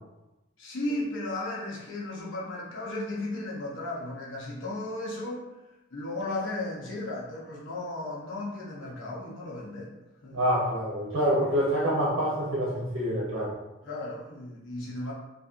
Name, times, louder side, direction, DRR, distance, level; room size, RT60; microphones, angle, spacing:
voice 1, 0.6-5.5 5.9-9.9 10.2-10.4 13.8-15.1, left 2 dB, 70° left, -5 dB, 0.7 m, -35 dB
voice 2, 10.3-13.5, equal, 65° right, -6 dB, 0.7 m, -26 dB
2.4 x 2.4 x 2.5 m, 0.99 s
head